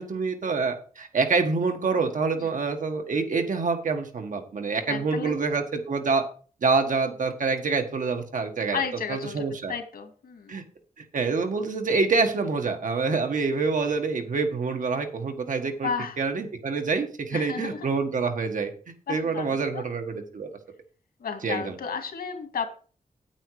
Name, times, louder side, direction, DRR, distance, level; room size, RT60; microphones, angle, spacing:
voice 1, 0.0-6.2 6.6-8.8 9.1-9.7 10.5-10.6 11.0-15.9 16.2-18.7 19.1-20.5 21.4-21.8, right 4 dB, 60° right, 5 dB, 1.6 m, -26 dB
voice 2, 4.9-5.3 8.7-10.6 15.8-16.2 17.3-17.9 19.1-19.9 21.2-22.7, left 6 dB, 90° left, 6 dB, 2.2 m, -33 dB
9.1 x 8.9 x 4.9 m, 0.40 s
wide cardioid pair, 150°, 15 cm